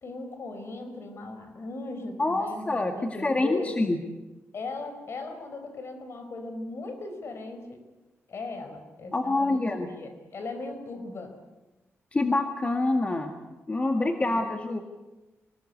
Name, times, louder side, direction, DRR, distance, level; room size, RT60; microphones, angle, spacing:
voice 1, 0.0-3.9 4.5-7.8 8.3-9.6 9.9-11.3 14.2-14.4, left 3 dB, 60° left, 7 dB, 4.8 m, -38 dB
voice 2, 2.2-4.0 9.1-9.9 12.1-13.3 13.7-14.8, left 2 dB, 25° left, 4 dB, 1.8 m, -26 dB
25.0 x 19.0 x 8.4 m, 1.1 s
cardioid pair, 105°, 5 cm